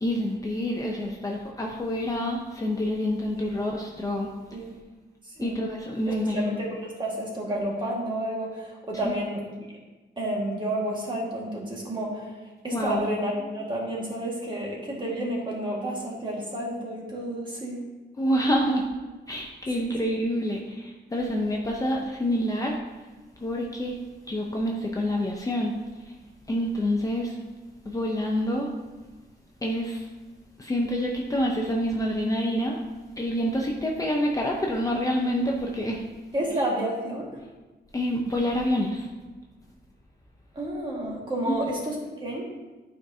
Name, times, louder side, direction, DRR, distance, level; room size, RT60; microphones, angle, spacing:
voice 1, 0.0-4.3 5.4-6.6 9.0-9.1 12.7-13.0 18.2-18.9 19.3-22.8 23.4-24.0 24.3-25.7 26.5-27.4 27.9-28.7 29.6-30.1 30.6-32.8 33.2-36.0 37.9-39.1 41.5-41.6, equal, 20° left, -1 dB, 0.6 m, -27 dB
voice 2, 5.2-5.6 6.1-9.4 10.2-12.4 12.6-17.8 19.8-20.2 36.3-37.4 40.5-42.0 42.2-42.4, right 1 dB, 25° right, -3 dB, 1.7 m, -30 dB
11.0 x 4.7 x 2.7 m, 1.2 s
wide cardioid pair, 155°, 18 cm